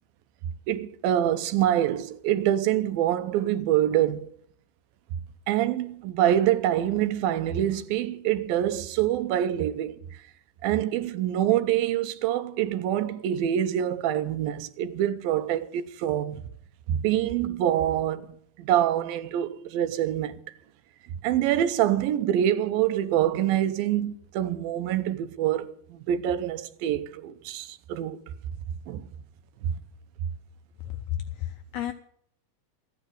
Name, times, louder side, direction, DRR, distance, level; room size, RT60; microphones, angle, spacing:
voice 1, 0.7-4.3 5.5-10.0 10.6-16.4 16.9-20.4 21.2-28.2 28.9-29.1 29.6-29.8, right 11 dB, 85° right, 2.7 m, -25 dB
voice 2, 31.1-31.9, left 12 dB, 80° left, 1.7 m, -32 dB
14.5 x 9.5 x 7.7 m
omnidirectional pair, 4.0 m